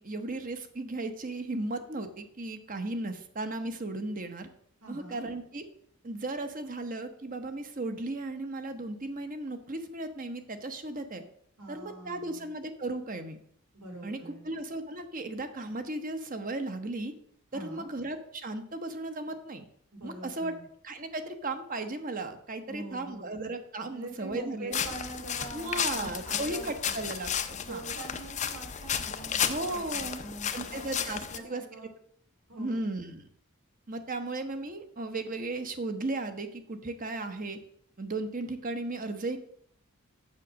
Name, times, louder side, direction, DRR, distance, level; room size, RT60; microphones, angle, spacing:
voice 1, 0.0-4.5 4.9-5.6 6.0-11.2 11.7-13.4 14.0-17.1 17.5-19.6 20.0-20.5 20.8-24.7 25.5-27.8 29.5-30.2 30.5-31.6 32.6-33.3 33.9-37.6 38.0-39.4, right 2 dB, 35° right, 7 dB, 1.0 m, -35 dB
voice 2, 4.8-5.2 11.6-12.5 13.7-14.5 17.5-17.9 19.9-20.6 22.7-23.3 23.8-27.0 27.6-31.9 32.5-32.8, right 2 dB, 85° right, 2 dB, 3.0 m, -44 dB
sound 1, 24.7-31.4, left 8 dB, 35° left, 0.6 m, -33 dB
7.5 x 7.1 x 6.3 m, 0.66 s
head